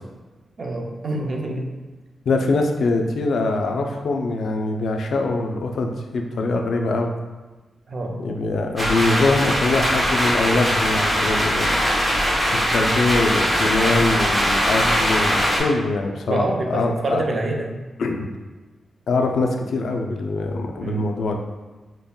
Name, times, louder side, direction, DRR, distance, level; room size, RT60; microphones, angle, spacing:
voice 1, 0.6-1.7 7.9-8.2 8.7-8.8 16.3-17.7 20.8-21.0, right 2 dB, 40° right, 1 dB, 0.4 m, -26 dB
voice 2, 2.3-7.1 8.2-11.7 12.7-17.2 18.0-18.3 19.1-21.4, left 3 dB, 70° left, 2 dB, 0.3 m, -23 dB
sound 1, 8.8-15.6, equal, 15° right, 0.8 m, -21 dB
5.1 x 2.1 x 2.2 m, 1.2 s
wide cardioid pair, 165°, 0 cm